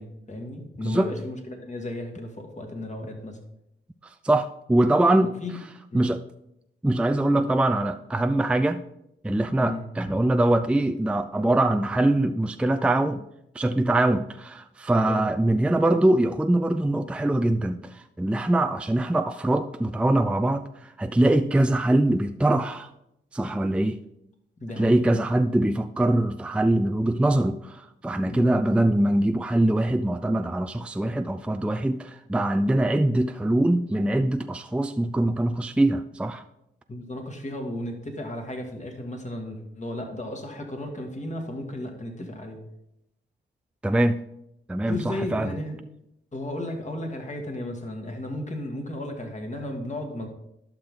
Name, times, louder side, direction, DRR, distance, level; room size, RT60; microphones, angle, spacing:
voice 1, 0.0-3.4 5.2-5.6 5.9-6.1 9.6-9.8 15.1-15.3 24.6-25.0 28.3-28.5 36.9-42.6 44.8-45.8 46.3-50.3, left 1 dB, 35° left, 3 dB, 2.2 m, -34 dB
voice 2, 4.2-5.3 5.9-6.2 6.8-8.8 9.2-13.2 13.5-22.9 23.3-24.0 24.8-36.4 43.8-44.2 44.7-45.6, right 1 dB, 5° right, 9 dB, 0.4 m, -23 dB
11.5 x 5.9 x 3.8 m, 0.81 s
cardioid pair, 55°, 21 cm